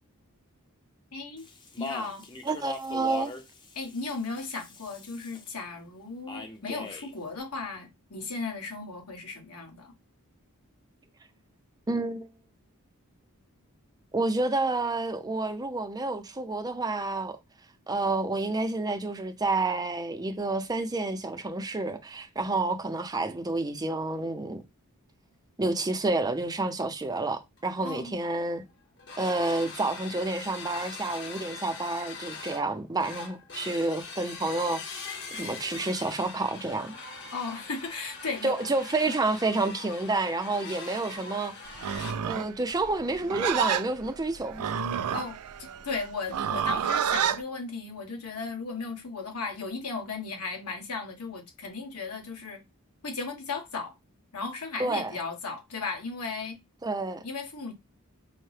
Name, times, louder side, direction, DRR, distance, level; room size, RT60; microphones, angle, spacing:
voice 1, 1.1-1.4 1.8-2.2 3.7-9.9 27.8-28.2 37.3-38.7 45.1-52.6 53.0-53.9 54.3-56.6 57.2-57.7, left 4 dB, 80° left, 1.4 m, -36 dB
Speech, 1.4-5.5 6.3-7.1, left 4 dB, 20° left, 0.6 m, -41 dB
voice 2, 2.4-3.3 11.9-12.3 14.1-17.4 17.9-24.6 25.6-28.6 29.2-36.9 38.4-41.5 42.3-44.7 54.8-55.1 56.8-57.2, right 2 dB, 15° right, 0.5 m, -29 dB
sound 1, 27.6-27.7 27.9-28.1 28.4-28.6 29.0-42.1, left 4 dB, 55° left, 1.0 m, -42 dB
Livestock farm animals working animals, 41.7-47.4, right 8 dB, 85° right, 0.4 m, -29 dB
5.3 x 2.1 x 3.2 m
head